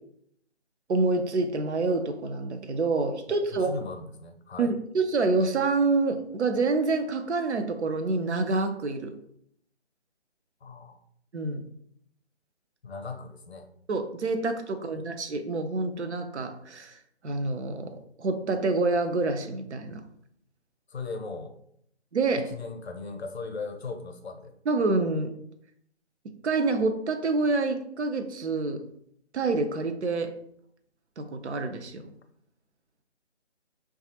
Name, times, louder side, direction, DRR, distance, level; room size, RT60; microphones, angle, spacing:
voice 1, 0.9-3.7 4.6-9.1 11.3-11.6 13.9-17.0 17.2-20.0 22.1-22.5 24.7-25.3 26.4-28.8 29.3-30.3 31.2-32.1, right 3 dB, 75° right, 7 dB, 0.5 m, -27 dB
voice 2, 3.3-4.8 10.6-11.0 12.8-13.7 14.8-15.2 20.9-21.5 22.3-24.5, left 4 dB, 65° left, 6 dB, 0.6 m, -38 dB
3.1 x 2.4 x 2.8 m, 0.69 s
figure-of-eight pair, 155°, 34 cm